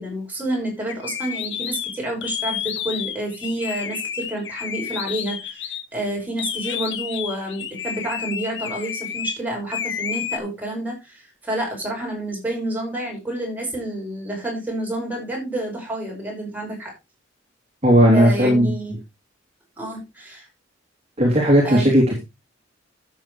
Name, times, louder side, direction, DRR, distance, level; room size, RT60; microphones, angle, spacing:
voice 1, 0.0-16.9 18.1-19.0 19.8-20.5 21.6-21.9, right 1 dB, 10° right, -1 dB, 5.7 m, -29 dB
sound 1, 0.9-5.8 6.4-9.4 9.7-10.4, left 9 dB, 65° left, 1.3 m, -30 dB
voice 2, 17.8-18.7 21.2-22.2, equal, 35° right, -2 dB, 3.1 m, -15 dB
12.5 x 7.6 x 3.2 m, 0.25 s
head